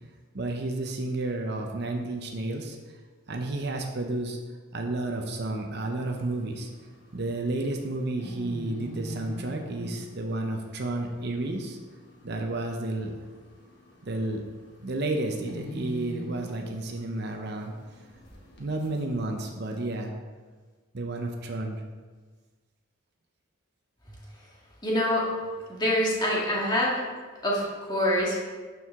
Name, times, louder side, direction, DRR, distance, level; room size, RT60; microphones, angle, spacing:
voice 1, 0.3-2.8 3.3-4.4 4.7-6.7 7.1-11.8 12.2-13.1 14.0-14.4 14.8-17.7 18.6-20.1 20.9-21.8, right 2 dB, 50° right, 3 dB, 0.7 m, -31 dB
sound 1, 5.8-19.2, equal, 55° left, 1.5 m, -45 dB
voice 2, 24.8-25.3 25.7-27.0 27.4-28.4, left 1 dB, 20° left, -5 dB, 1.7 m, -25 dB
12.0 x 4.6 x 3.6 m, 1.4 s
head